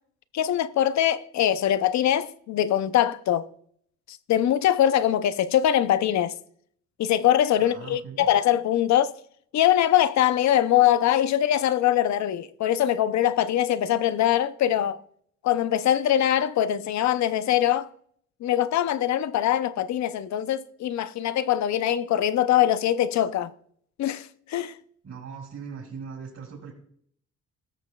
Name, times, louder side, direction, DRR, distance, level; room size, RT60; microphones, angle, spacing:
voice 1, 0.3-3.5 4.3-6.3 7.0-9.1 9.5-15.0 15.4-17.9 18.4-23.5 24.0-24.7, left 11 dB, 65° left, 0.7 m, -22 dB
voice 2, 7.6-8.3 25.0-26.7, right 6 dB, 55° right, 4.3 m, -40 dB
19.0 x 6.7 x 2.3 m
cardioid pair, 90°, 30 cm